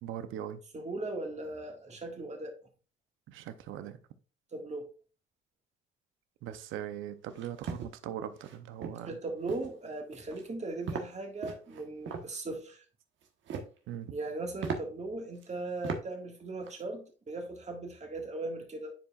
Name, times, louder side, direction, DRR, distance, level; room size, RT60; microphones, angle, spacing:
voice 1, 0.0-0.6 3.3-4.0 6.4-9.2 13.9-14.1, right 10 dB, 90° right, 0.7 m, -40 dB
voice 2, 0.7-2.5 4.5-4.9 9.1-12.8 14.1-18.9, right 2 dB, 35° right, 1.8 m, -38 dB
sound 1, 7.3-7.9 8.4-8.6 8.8-9.1 9.5-9.8 10.1-10.5 10.9-11.1 11.4-12.3 13.2-13.8 14.2-14.3 14.6-14.8 15.4-15.5 15.8-16.0 16.4-16.8, right 5 dB, 70° right, 1.2 m, -38 dB
9.9 x 4.7 x 2.4 m
cardioid pair, 90°, 20 cm